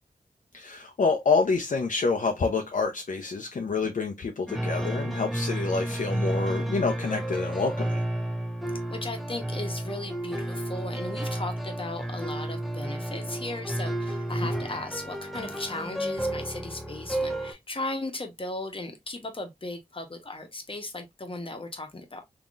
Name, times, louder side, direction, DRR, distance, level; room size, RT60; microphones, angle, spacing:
voice 1, 0.5-8.0, left 4 dB, 60° left, 0.6 m, -27 dB
sound 1, 4.5-17.5, right 1 dB, ahead, 0.7 m, -31 dB
voice 2, 8.9-22.2, left 2 dB, 35° left, 1.0 m, -36 dB
3.7 x 2.9 x 2.4 m
cardioid pair, 50°, 15 cm